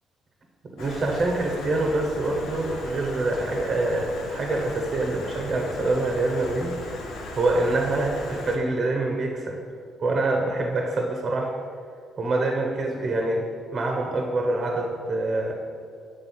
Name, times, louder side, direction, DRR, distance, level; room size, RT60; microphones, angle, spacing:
voice 1, 0.6-6.8 7.3-9.6 10.0-11.6 12.2-13.5 13.7-15.5, right 2 dB, 50° right, 1 dB, 0.8 m, -25 dB
Stream, 0.8-8.6, left 2 dB, 85° left, 0.8 m, -38 dB
7.4 x 3.4 x 5.4 m, 2.3 s
cardioid pair, 90°, 0 cm